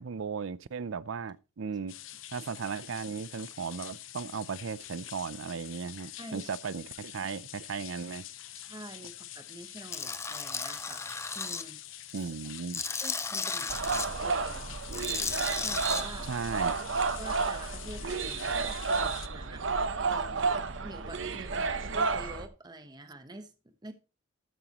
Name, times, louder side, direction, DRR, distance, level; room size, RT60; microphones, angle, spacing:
voice 1, 0.0-2.0 2.3-8.2 12.1-12.8 16.3-16.8, right 5 dB, 90° right, 0.5 m, -36 dB
sound 1, 1.9-19.3, left 13 dB, 85° left, 0.7 m, -46 dB
voice 2, 6.2-6.5 8.5-12.3 13.0-14.8 15.5-16.3 17.2-23.9, right 1 dB, 20° right, 1.1 m, -47 dB
Tools, 9.9-11.6 12.1-14.1 14.8-16.0, left 4 dB, 15° left, 0.6 m, -34 dB
sound 2, 13.7-22.5, right 4 dB, 75° right, 0.9 m, -31 dB
13.0 x 8.9 x 3.0 m
head